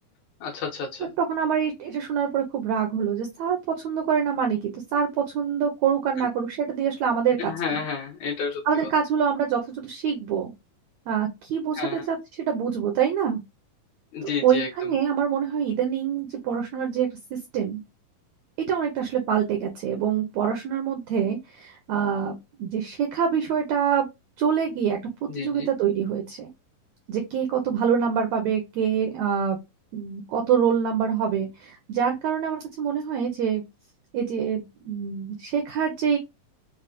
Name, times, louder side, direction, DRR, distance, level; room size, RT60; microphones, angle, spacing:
voice 1, 0.4-1.1 7.4-8.9 11.8-12.0 14.1-14.9 25.3-25.7, left 5 dB, 70° left, 1.9 m, -31 dB
voice 2, 1.2-3.6 3.8-7.8 8.6-10.5 11.1-13.4 14.2-17.8 18.7-24.1 24.4-25.0 25.4-26.5 27.1-29.6 29.9-33.6 34.1-36.2, right 7 dB, 80° right, 1.6 m, -25 dB
5.5 x 2.1 x 2.5 m
omnidirectional pair, 4.0 m